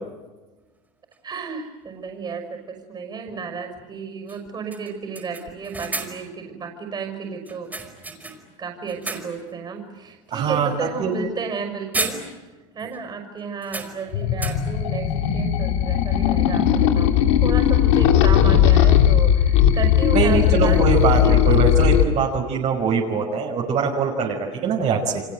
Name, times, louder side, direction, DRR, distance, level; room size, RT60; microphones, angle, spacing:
sound 1, 1.1-1.2 3.3-3.4 3.8-3.9 4.3-4.4 4.7-6.4 7.5-8.6 8.9-9.5 10.0-10.2 11.4-11.6 11.9-12.7 12.9-13.0 13.6-14.9, right 3 dB, 10° right, 5.1 m, -33 dB
voice 1, 1.2-7.8 8.1-12.2 12.7-20.8 21.2-21.6, right 5 dB, 30° right, 5 dB, 5.9 m, -33 dB
voice 2, 10.3-11.1 20.1-25.2, right 5 dB, 45° right, 0 dB, 5.3 m, -22 dB
sound 2, 14.1-22.0, left 10 dB, 85° left, 2.8 m, -17 dB
30.0 x 25.0 x 7.9 m, 1.2 s
supercardioid pair, 130°, 15 cm